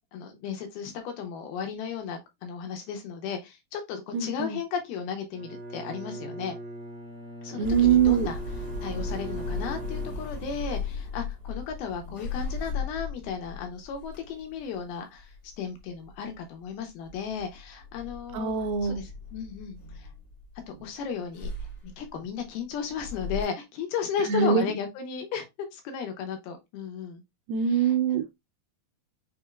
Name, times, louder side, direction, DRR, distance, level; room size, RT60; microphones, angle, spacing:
voice 1, 0.1-6.5 7.4-8.4 8.8-18.5 18.8-20.1 20.8-27.2 27.7-28.0, left 7 dB, 75° left, 2.8 m, -35 dB
voice 2, 4.1-4.6 7.5-8.3 18.3-19.0 24.3-24.6 27.5-28.3, right 7 dB, 80° right, 2.3 m, -23 dB
Bowed string instrument, 5.3-10.8, right 1 dB, 65° right, 1.3 m, -40 dB
sound 1, 7.6-16.8 17.0-20.8 21.3-23.5, left 3 dB, 50° left, 1.3 m, -37 dB
6.1 x 3.5 x 2.3 m
omnidirectional pair, 4.6 m